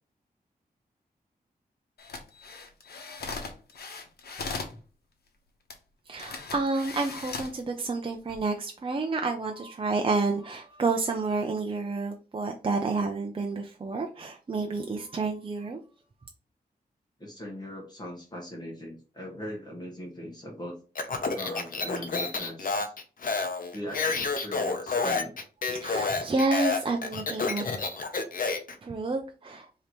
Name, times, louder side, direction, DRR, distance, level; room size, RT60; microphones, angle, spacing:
sound 1, 2.0-4.8 5.7-5.8 6.1-7.6 8.1-8.4, left 4 dB, 85° left, 0.9 m, -38 dB
voice 1, 6.1-15.8 25.8-27.6 28.8-29.7, right 3 dB, 35° right, 3 dB, 0.5 m, -29 dB
voice 2, 17.2-20.8 21.3-22.9 23.7-25.4, equal, 25° left, 0 dB, 1.2 m, -40 dB
Speech, 20.9-28.7, left 4 dB, 60° left, 0.8 m, -29 dB
5.0 x 2.8 x 3.0 m, 0.37 s
wide cardioid pair, 120°, 16 cm